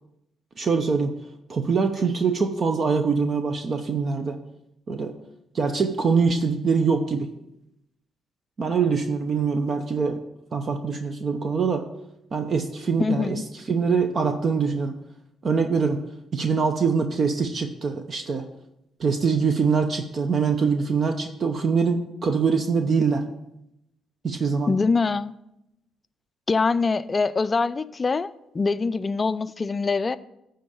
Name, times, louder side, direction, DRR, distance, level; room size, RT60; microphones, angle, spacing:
voice 1, 0.6-1.1 1.5-4.4 4.9-5.1 5.5-7.3 8.6-10.2 10.5-11.9 12.3-13.4 13.7-15.0 15.4-16.0 16.3-18.5 19.0-23.2 24.2-24.8, right 5 dB, 45° right, 6 dB, 0.7 m, -23 dB
voice 2, 13.0-13.4 24.7-25.3 26.5-30.2, left 4 dB, 30° left, 14 dB, 0.4 m, -24 dB
9.6 x 3.8 x 7.0 m, 0.83 s
cardioid pair, 90°, 0 cm